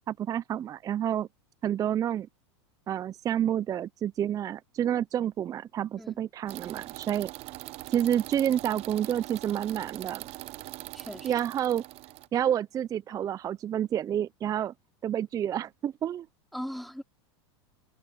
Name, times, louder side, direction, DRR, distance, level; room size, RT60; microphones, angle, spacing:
voice 1, 0.1-1.3 1.6-2.3 2.9-7.3 7.9-10.2 11.2-11.8 12.3-14.7 15.0-16.3, right 10 dB, 25° right, 0.5 m, -29 dB
sound 1, 6.5-12.3, right 19 dB, 45° right, 0.9 m, -42 dB
voice 2, 10.9-11.3 16.5-17.0, equal, ahead, 4.3 m, -39 dB
hypercardioid pair, 120°, 14 cm